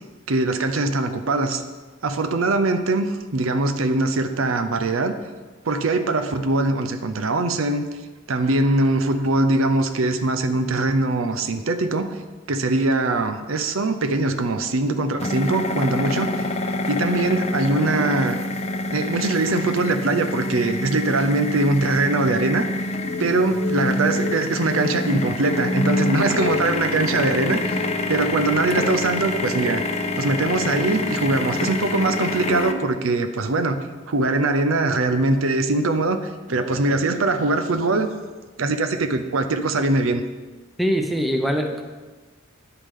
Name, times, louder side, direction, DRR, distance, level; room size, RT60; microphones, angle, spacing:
voice 1, 0.3-1.6 2.0-5.1 5.7-7.9 8.3-12.1 12.5-16.5 16.9-18.4 18.9-22.6 23.2-27.8 28.1-29.8 30.2-33.8 34.1-38.1 38.6-40.2, right 2 dB, 85° right, 8 dB, 0.7 m, -22 dB
sound 1, 15.2-32.7, left 2 dB, 30° left, 0.6 m, -26 dB
voice 2, 40.8-41.8, equal, ahead, 4 dB, 0.7 m, -22 dB
10.0 x 8.3 x 3.8 m, 1.3 s
head